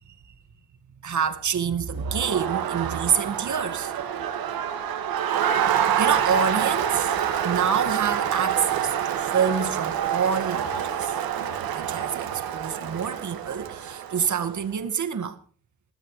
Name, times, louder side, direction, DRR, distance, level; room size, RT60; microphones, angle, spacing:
voice 1, 1.0-3.9 6.0-7.1 7.4-11.1 11.7-15.4, right 7 dB, 55° right, 2.0 m, -27 dB
Crowd, 2.0-14.5, right 9 dB, 75° right, 2.3 m, -27 dB
21.0 x 13.0 x 3.3 m
supercardioid pair, 60°, 36 cm